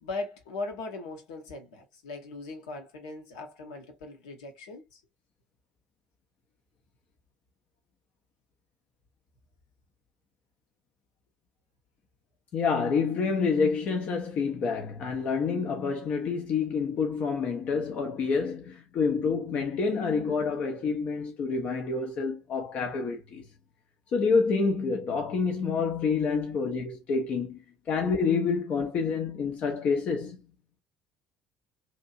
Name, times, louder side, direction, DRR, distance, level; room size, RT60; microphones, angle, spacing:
voice 1, 0.0-5.0, left 3 dB, 70° left, 0.8 m, -39 dB
voice 2, 12.5-23.4 24.1-27.6 27.9-30.4, left 5 dB, 50° left, 0.5 m, -28 dB
2.8 x 2.6 x 2.4 m
figure-of-eight pair, 55°, 3 cm